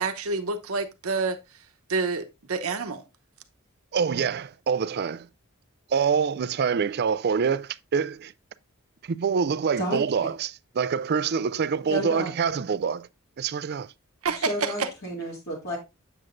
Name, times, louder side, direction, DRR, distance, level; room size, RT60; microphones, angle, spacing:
voice 1, 0.0-1.4 1.9-3.0 14.2-14.9, right 4 dB, 80° right, 0.9 m, -28 dB
voice 2, 3.9-5.3 5.9-8.3 9.0-13.1 13.4-13.9, right 6 dB, 50° right, 0.4 m, -26 dB
voice 3, 11.9-12.3 14.4-15.8, right 1 dB, 50° left, 2.2 m, -31 dB
7.8 x 7.7 x 2.6 m
head